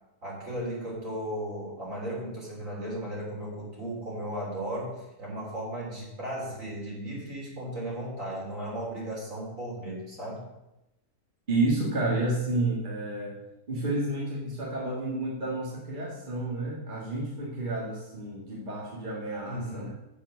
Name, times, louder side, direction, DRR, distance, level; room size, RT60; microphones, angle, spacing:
voice 1, 0.2-10.4 19.5-19.9, right 1 dB, 55° right, -4 dB, 3.9 m, -35 dB
voice 2, 11.5-13.4 13.7-19.9, right 2 dB, 30° right, -4 dB, 1.8 m, -30 dB
7.3 x 6.9 x 7.0 m, 0.92 s
omnidirectional pair, 1.6 m